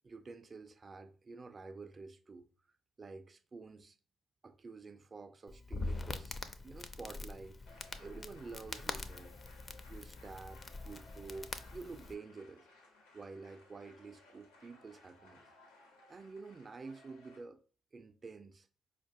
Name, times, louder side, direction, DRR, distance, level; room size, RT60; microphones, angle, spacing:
voice 1, 0.0-2.5 3.0-4.0 4.4-6.4 6.6-9.3 9.9-12.7 13.1-15.4 16.1-17.6 17.9-18.7, right 4 dB, 40° right, 0.4 m, -49 dB
Crackle, 5.5-12.1, left 3 dB, 35° left, 0.4 m, -44 dB
sound 1, 7.7-17.4, left 2 dB, 90° left, 0.7 m, -61 dB
4.3 x 2.2 x 2.7 m
hypercardioid pair, 50°, 0 cm